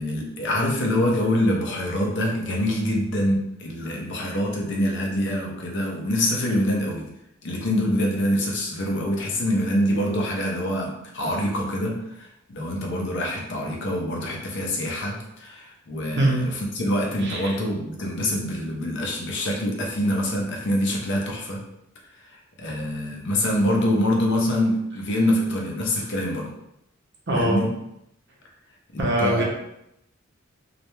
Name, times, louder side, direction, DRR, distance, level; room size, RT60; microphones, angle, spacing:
voice 1, 0.0-7.1 7.4-21.6 22.6-26.5 27.3-27.7 28.9-29.4, left 1 dB, 60° left, 0 dB, 0.6 m, -25 dB
voice 2, 27.3-27.6 29.0-29.4, right 1 dB, 60° right, -3 dB, 0.7 m, -22 dB
2.4 x 2.1 x 3.0 m, 0.81 s
head